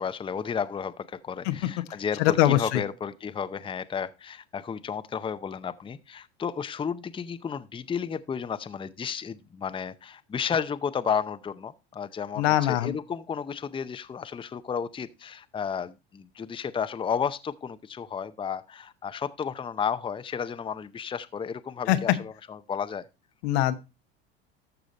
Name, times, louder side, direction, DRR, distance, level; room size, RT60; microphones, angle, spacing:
voice 1, 0.0-23.0, left 7 dB, 15° left, 0.6 m, -32 dB
voice 2, 2.2-2.8 12.4-13.0 21.9-22.0 23.4-23.7, left 13 dB, 80° left, 1.1 m, -22 dB
13.5 x 5.0 x 4.1 m
supercardioid pair, 95°, 31 cm